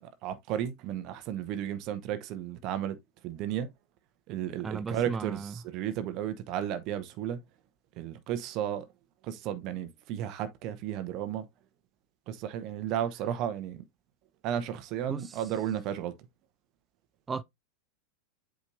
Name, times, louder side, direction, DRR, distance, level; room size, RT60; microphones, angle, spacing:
voice 1, 0.0-3.0 3.2-3.7 4.3-7.4 8.0-8.9 9.2-11.4 12.3-13.8 14.4-16.1, right 10 dB, 40° right, 0.9 m, -33 dB
voice 2, 4.6-5.5 15.1-15.2 17.3-17.4, right 5 dB, 15° right, 0.3 m, -34 dB
8.2 x 5.1 x 2.6 m
figure-of-eight pair, 90°, 0 cm